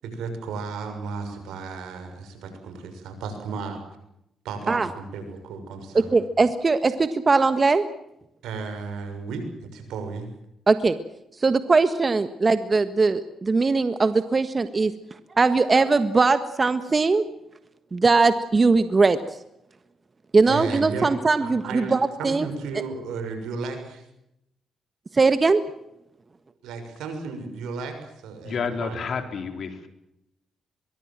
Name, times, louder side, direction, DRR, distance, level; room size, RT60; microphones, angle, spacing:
voice 1, 0.0-3.8 4.4-6.2 8.4-9.5 9.7-10.3 20.5-21.1 21.4-24.1 26.6-29.0, right 4 dB, 85° right, 7 dB, 6.6 m, -34 dB
voice 2, 5.9-7.8 10.7-11.0 11.4-14.9 15.3-17.2 17.9-19.2 20.3-22.5 25.1-25.6, right 3 dB, 35° right, 11 dB, 1.5 m, -20 dB
voice 3, 28.4-29.9, left 5 dB, 65° left, 7 dB, 4.2 m, -30 dB
23.0 x 23.0 x 7.6 m, 0.83 s
supercardioid pair, 65°, 0 cm